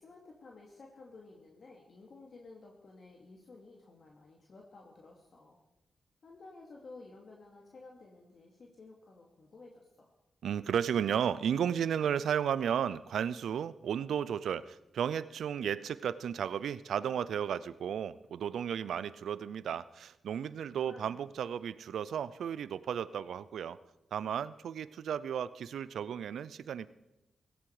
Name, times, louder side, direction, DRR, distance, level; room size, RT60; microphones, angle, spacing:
voice 1, 0.0-5.6 6.2-10.1 20.8-21.2, left 3 dB, 60° left, -1 dB, 2.7 m, -53 dB
voice 2, 10.4-23.8 24.1-26.9, right 8 dB, 80° right, 17 dB, 0.5 m, -34 dB
17.0 x 15.5 x 4.9 m, 0.96 s
supercardioid pair, 50°, 0 cm